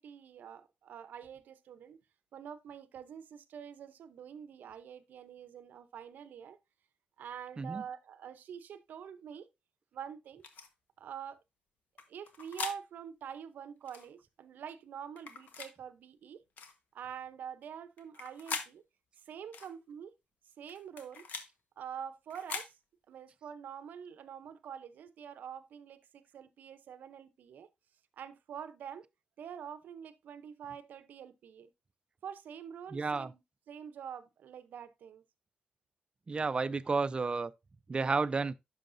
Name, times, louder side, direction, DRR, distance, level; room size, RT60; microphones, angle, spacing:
voice 1, 0.0-2.0 2.3-6.6 7.2-9.5 9.9-10.4 11.0-11.4 12.1-16.4 16.9-18.8 19.3-20.1 20.6-21.3 21.8-22.7 23.1-27.7 28.2-29.0 29.4-31.7 32.2-33.4 33.7-35.2, right 8 dB, 75° right, 0.7 m, -46 dB
sound 1, 10.4-10.7 12.0-12.8 13.9-14.1 15.2-15.7 16.6-16.8 18.0-18.7 19.5-19.7 20.7-21.5 22.3-22.7, left 5 dB, 75° left, 1.3 m, -41 dB
voice 2, 32.9-33.3 36.3-37.5 37.9-38.5, right 4 dB, 35° right, 0.5 m, -31 dB
10.5 x 6.3 x 2.6 m
cardioid pair, 75°, 3 cm